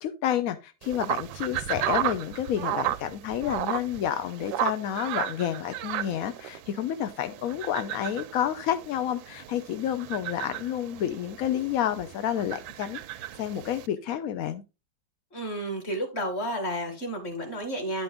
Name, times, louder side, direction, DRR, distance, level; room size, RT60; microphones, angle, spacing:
voice 1, 0.0-14.6, left 10 dB, 70° left, 0.8 m, -30 dB
sound 1, 0.8-13.9, right 13 dB, 85° right, 1.3 m, -34 dB
voice 2, 15.3-18.0, equal, 35° left, 2.2 m, -31 dB
10.0 x 5.2 x 3.6 m
omnidirectional pair, 2.1 m